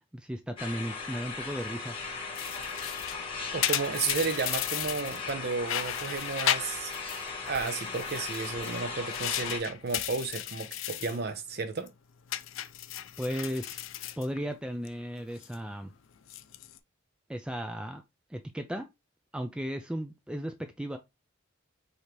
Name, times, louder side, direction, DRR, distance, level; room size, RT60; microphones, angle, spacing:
voice 1, 0.1-2.0 13.2-13.8 14.2-15.9 17.3-18.0 18.3-18.9 19.3-21.0, equal, 5° right, 0.3 m, -35 dB
sound 1, 0.6-9.6, left 4 dB, 25° left, 1.3 m, -38 dB
sound 2, 2.3-5.3 5.6-7.2 7.5-11.2 11.5-11.9 12.3-14.9 15.2-15.6 16.2-16.8, left 12 dB, 70° left, 0.4 m, -35 dB
voice 2, 3.5-6.9 7.5-11.9, right 4 dB, 50° right, 0.7 m, -33 dB
5.0 x 2.8 x 3.0 m
head